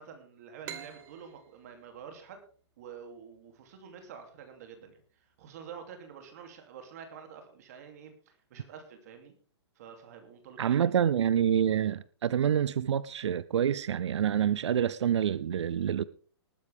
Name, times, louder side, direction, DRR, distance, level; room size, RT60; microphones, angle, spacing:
voice 1, 0.0-2.4 2.8-9.3 9.8-10.9, right 7 dB, 35° right, 2.7 m, -48 dB
sound 1, 0.6-4.1, right 10 dB, 15° right, 0.8 m, -48 dB
voice 2, 10.6-16.0, right 9 dB, 85° right, 0.5 m, -27 dB
19.5 x 9.8 x 3.5 m
hypercardioid pair, 175°, 14 cm